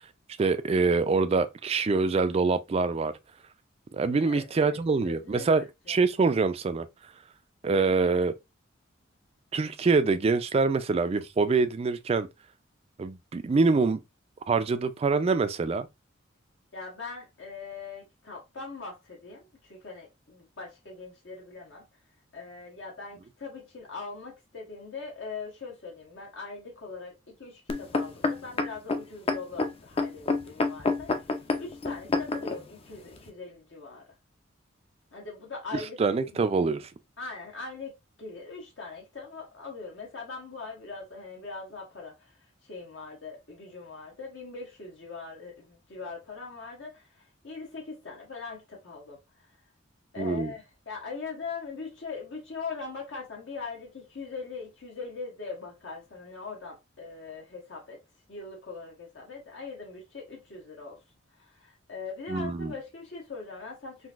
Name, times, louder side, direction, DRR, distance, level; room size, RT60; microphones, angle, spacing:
voice 1, 0.4-3.1 3.9-6.9 7.6-8.3 9.5-12.3 13.0-14.0 14.5-15.9 35.7-36.9 50.2-50.5 62.3-62.7, right 4 dB, 30° right, 0.3 m, -25 dB
voice 2, 4.1-6.0 16.7-21.9 22.3-31.3 31.6-34.0 35.1-36.0 37.2-49.2 50.1-58.0 58.3-61.0 61.4-64.1, left 4 dB, 70° left, 1.0 m, -41 dB
sound 1, 27.7-32.6 33.3-33.4, left 3 dB, 30° left, 0.4 m, -28 dB
3.8 x 2.6 x 2.4 m
head